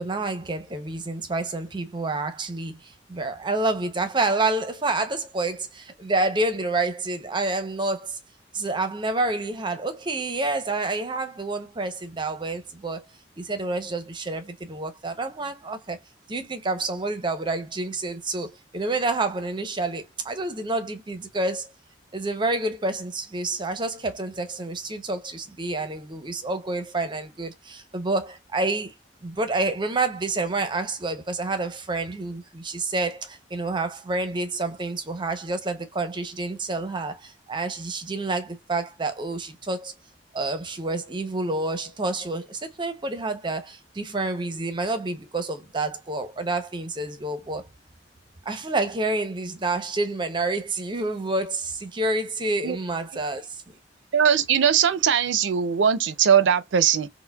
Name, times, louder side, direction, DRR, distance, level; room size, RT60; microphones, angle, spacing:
voice 1, 0.0-8.2 8.5-13.1 13.4-16.0 16.3-21.7 22.1-28.9 29.2-39.9 40.3-47.7 48.5-53.6, right 2 dB, 25° right, 0.6 m, -28 dB
voice 2, 54.1-57.1, right 8 dB, 80° right, 0.4 m, -20 dB
4.4 x 2.1 x 2.2 m
head